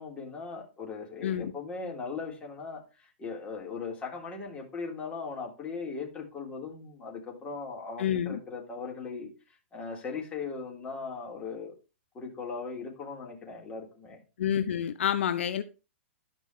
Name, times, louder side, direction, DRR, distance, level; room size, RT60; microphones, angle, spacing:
voice 1, 0.0-11.8 12.1-14.2, left 4 dB, 15° left, 3.9 m, -39 dB
voice 2, 8.0-8.4 14.4-15.6, left 9 dB, 75° left, 0.9 m, -28 dB
12.5 x 5.4 x 4.9 m
hypercardioid pair, 150°, 7 cm